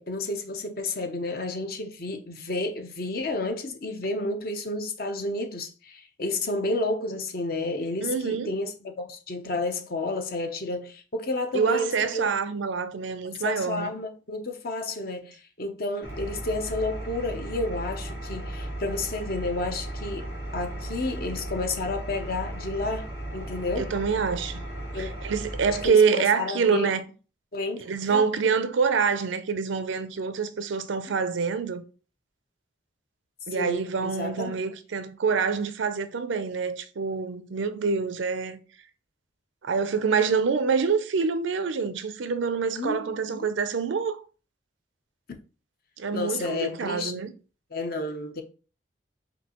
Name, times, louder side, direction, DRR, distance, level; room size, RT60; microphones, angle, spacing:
voice 1, 0.0-12.3 13.4-23.1 23.3-23.9 24.9-25.1 25.8-26.9 27.5-27.8 28.1-28.2 33.5-34.5 42.8-43.5 46.1-47.1 47.7-48.4, left 2 dB, 50° left, 0.7 m, -31 dB
voice 2, 8.0-8.5 11.5-13.9 23.8-24.7 24.9-27.0 27.8-31.8 33.5-38.6 39.6-44.2 46.0-47.3, right 5 dB, 85° right, 0.5 m, -26 dB
Engine, 16.0-25.9, right 1 dB, 90° left, 1.9 m, -36 dB
5.2 x 2.7 x 2.9 m
head